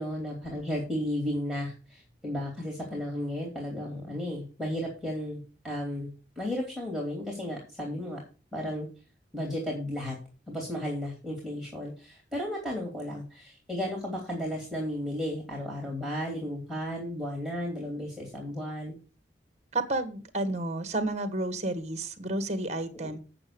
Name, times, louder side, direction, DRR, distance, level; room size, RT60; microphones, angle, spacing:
voice 1, 0.0-8.2 8.5-8.9 9.3-10.2 10.5-18.9, left 1 dB, ahead, -3 dB, 2.9 m, -34 dB
voice 2, 19.7-23.2, right 2 dB, 35° right, 10 dB, 1.5 m, -31 dB
8.6 x 6.9 x 6.8 m, 0.34 s
head